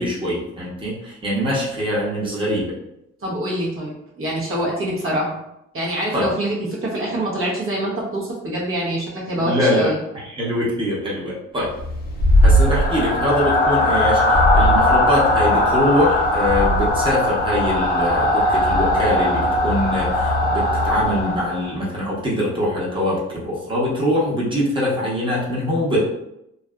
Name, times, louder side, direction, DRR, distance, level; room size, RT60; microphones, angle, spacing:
voice 1, 0.0-2.7 6.1-6.3 9.4-11.7 12.4-26.0, equal, 15° right, -6 dB, 0.8 m, -23 dB
voice 2, 3.2-5.4 5.7-10.0, right 1 dB, 45° right, -5 dB, 0.8 m, -25 dB
sound 1, 11.7-21.7, left 1 dB, 30° left, 0.5 m, -18 dB
2.6 x 2.3 x 2.2 m, 0.83 s
cardioid pair, 90°, 30 cm